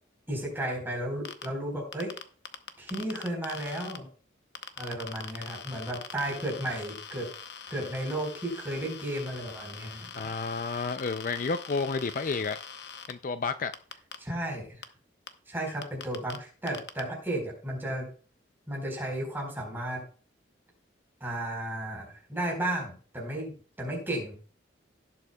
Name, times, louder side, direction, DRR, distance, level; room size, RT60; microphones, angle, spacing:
voice 1, 0.3-2.1 2.8-4.1 4.8-7.3 7.7-10.1 14.2-14.8 15.5-18.1 18.7-20.0 21.2-24.3, right 1 dB, 10° right, 4.3 m, -34 dB
sound 1, 1.3-1.5 1.9-4.0 4.6-13.1 13.7-14.2 14.8-14.9 15.3-15.4 15.8-16.4 16.7-17.0, left 7 dB, 60° left, 0.8 m, -42 dB
voice 2, 10.1-12.6 13.1-13.7, left 4 dB, 45° left, 0.4 m, -31 dB
17.5 x 7.8 x 2.3 m
head